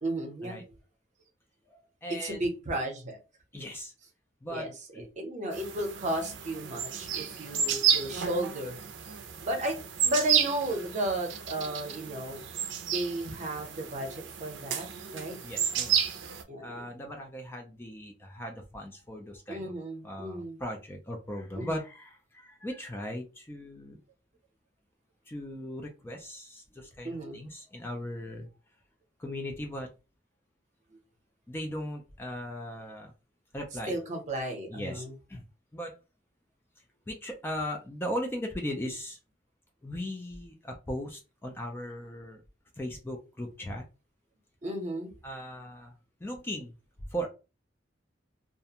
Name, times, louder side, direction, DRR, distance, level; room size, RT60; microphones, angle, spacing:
voice 1, 0.0-0.8 2.2-3.2 4.5-8.8 9.4-9.8 10.0-12.4 12.9-14.9 15.1-15.4 16.5-16.9 19.5-20.6 21.6-21.8 27.0-27.4 33.9-35.1 44.6-45.1, right 1 dB, 40° right, 3 dB, 0.7 m, -34 dB
voice 2, 2.0-2.4 3.5-3.9 4.4-4.7 4.9-5.1 15.4-16.0 16.6-19.7 20.0-24.0 25.3-28.5 29.2-29.9 31.5-33.1 33.5-34.0 34.7-35.4 35.7-36.0 37.1-39.2 39.8-42.4 42.8-43.8 45.2-45.9 46.2-46.7 47.1-47.3, equal, 10° left, 2 dB, 0.4 m, -38 dB
sound 1, 5.5-16.4, right 8 dB, 80° right, 0.4 m, -32 dB
2.4 x 2.2 x 2.8 m, 0.30 s
head